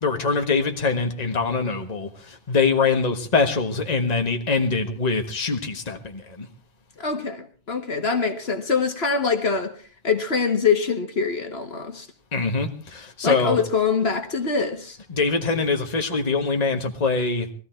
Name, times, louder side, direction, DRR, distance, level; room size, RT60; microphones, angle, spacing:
voice 1, 0.0-6.5 12.3-13.6 15.1-17.5, left 4 dB, 35° left, 1.6 m, -23 dB
voice 2, 7.0-9.7 10.0-12.1 13.2-15.0, left 5 dB, 65° left, 1.8 m, -24 dB
19.5 x 14.0 x 4.5 m
omnidirectional pair, 1.1 m